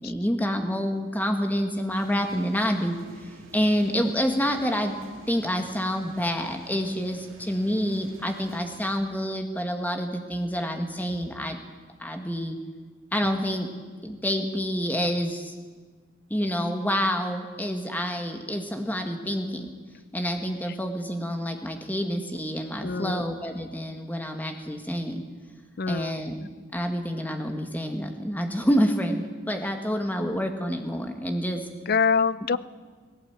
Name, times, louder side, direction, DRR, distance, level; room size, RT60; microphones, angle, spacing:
voice 1, 0.0-5.0 5.3-11.6 12.0-12.6 13.1-13.7 14.0-15.5 16.3-19.7 20.1-25.2 25.9-31.7, equal, 10° left, 4 dB, 1.7 m, -28 dB
sound 1, 1.9-9.0, right 2 dB, 75° right, 3.1 m, -50 dB
voice 2, 22.8-23.3 25.8-26.2 31.9-32.6, left 5 dB, 45° left, 17 dB, 0.5 m, -25 dB
17.5 x 17.0 x 8.8 m, 1.5 s
head